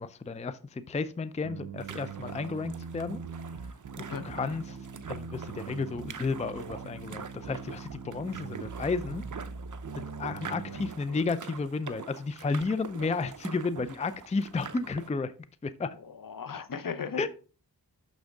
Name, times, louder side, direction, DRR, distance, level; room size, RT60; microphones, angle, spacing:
voice 1, 0.0-3.2 4.0-4.8 5.1-9.2 10.0-15.3 15.6-15.9 17.2-17.3, left 4 dB, 20° left, 0.4 m, -32 dB
sound 1, 1.4-10.9, right 5 dB, 90° right, 0.7 m, -42 dB
sound 2, 1.8-15.1, right 6 dB, 50° right, 0.6 m, -45 dB
voice 2, 10.4-11.2 15.9-17.3, left 6 dB, 60° left, 0.8 m, -38 dB
6.3 x 6.2 x 3.5 m
wide cardioid pair, 75°, 38 cm